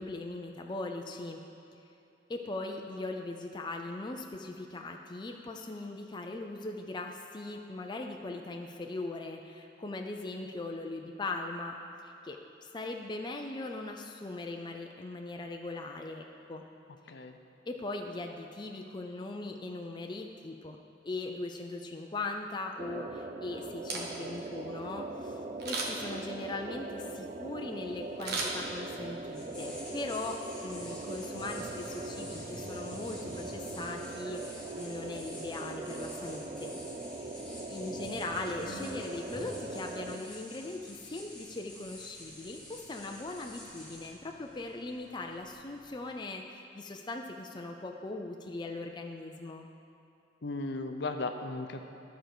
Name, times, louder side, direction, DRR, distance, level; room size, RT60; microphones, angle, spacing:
voice 1, 0.0-1.4 2.3-11.7 12.0-16.6 17.7-20.8 21.0-36.8 37.2-37.3 37.7-49.7, left 2 dB, 25° left, 2 dB, 0.5 m, -40 dB
voice 2, 17.1-17.4 50.4-51.8, left 3 dB, 65° left, 6 dB, 0.6 m, -36 dB
sound 1, 22.8-40.2, right 2 dB, 35° right, 0.5 m, -41 dB
Camera, 23.7-24.5 25.6-26.2 28.2-29.1 29.6-29.7, right 3 dB, 60° right, 1.3 m, -36 dB
sound 2, 27.7-46.1, left 1 dB, 5° left, 1.9 m, -48 dB
12.5 x 4.5 x 6.7 m, 2.8 s
head